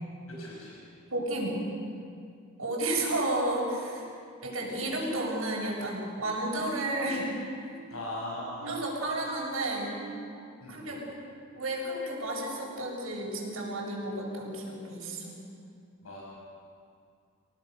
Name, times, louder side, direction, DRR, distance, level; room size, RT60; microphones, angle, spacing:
voice 1, 0.3-0.9 7.9-8.8 10.6-10.9 16.0-16.3, left 1 dB, 85° left, -4 dB, 6.7 m, -39 dB
voice 2, 1.1-1.6 2.6-4.1 4.4-7.3 8.7-10.0 10.7-11.0 11.5-15.4, right 1 dB, 75° right, -3 dB, 7.1 m, -32 dB
sound 1, 7.0-12.7 13.1-13.4 13.9-14.1, right 5 dB, 50° right, 4.2 m, -48 dB
29.0 x 18.5 x 6.8 m, 2.4 s
head